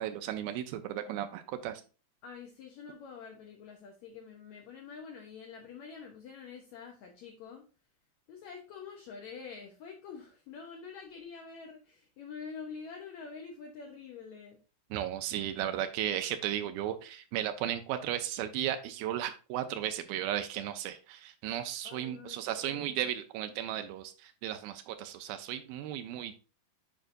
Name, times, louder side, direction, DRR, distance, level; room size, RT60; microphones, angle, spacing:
voice 1, 0.0-1.8 14.9-26.3, right 11 dB, 85° right, 8 dB, 2.5 m, -35 dB
voice 2, 2.2-7.6 8.3-14.6 21.8-23.1, left 5 dB, 75° left, 2 dB, 1.7 m, -46 dB
8.9 x 5.0 x 2.6 m, 0.34 s
omnidirectional pair, 4.2 m